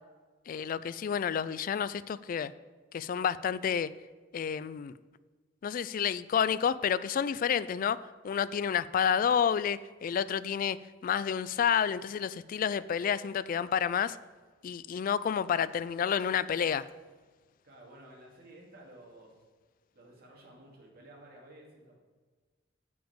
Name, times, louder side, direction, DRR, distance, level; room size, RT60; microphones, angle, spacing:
voice 1, 0.5-2.5 2.9-3.9 4.3-4.9 5.6-8.0 8.2-10.8 11.0-14.2 14.6-16.8, left 7 dB, 45° left, 17 dB, 0.3 m, -29 dB
voice 2, 17.6-19.3 19.9-22.0, right 1 dB, 55° right, -2 dB, 2.5 m, -53 dB
7.2 x 6.0 x 7.1 m, 1.4 s
head